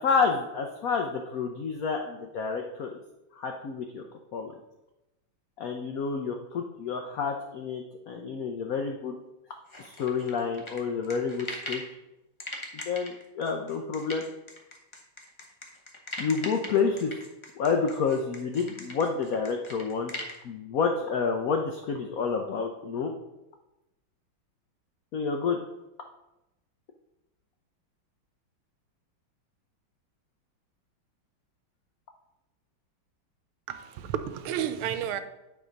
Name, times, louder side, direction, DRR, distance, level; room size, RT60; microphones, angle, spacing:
voice 1, 0.0-3.0 3.4-4.0 4.3-4.5 5.6-9.1 9.8-11.8 12.9-14.2 16.2-17.2 17.6-20.1 20.4-23.1 25.1-25.6, left 5 dB, 80° left, 0.8 m, -29 dB
sound 1, 9.7-11.9 12.4-20.4, left 1 dB, 35° left, 0.4 m, -40 dB
voice 2, 33.7-35.2, right 10 dB, 90° right, 1.5 m, -31 dB
9.3 x 3.6 x 5.1 m
omnidirectional pair, 2.3 m